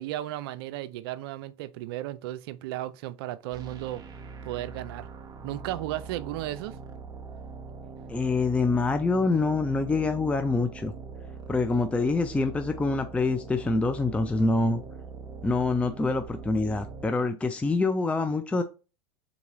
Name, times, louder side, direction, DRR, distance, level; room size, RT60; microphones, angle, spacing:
voice 1, 0.0-4.0 4.5-5.1 5.4-6.8, right 14 dB, 65° right, 0.4 m, -34 dB
sound 1, 3.5-17.1, right 4 dB, 30° right, 0.8 m, -42 dB
voice 2, 8.1-10.9 11.5-14.8 15.4-18.6, left 3 dB, 10° left, 0.4 m, -25 dB
3.9 x 3.0 x 3.7 m
hypercardioid pair, 95°, 14 cm